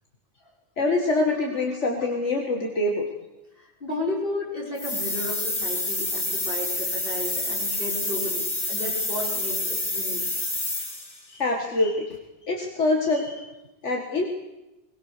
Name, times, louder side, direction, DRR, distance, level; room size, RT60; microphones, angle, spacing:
voice 1, 0.8-3.1 11.3-12.1 12.5-13.4 13.8-14.2, left 2 dB, 85° left, 1 dB, 2.3 m, -25 dB
voice 2, 3.6-10.2, left 1 dB, 55° left, -3 dB, 5.9 m, -33 dB
sound 1, 4.8-11.2, left 2 dB, 30° left, 2.3 m, -28 dB
21.5 x 20.5 x 6.8 m, 1.0 s
omnidirectional pair, 1.2 m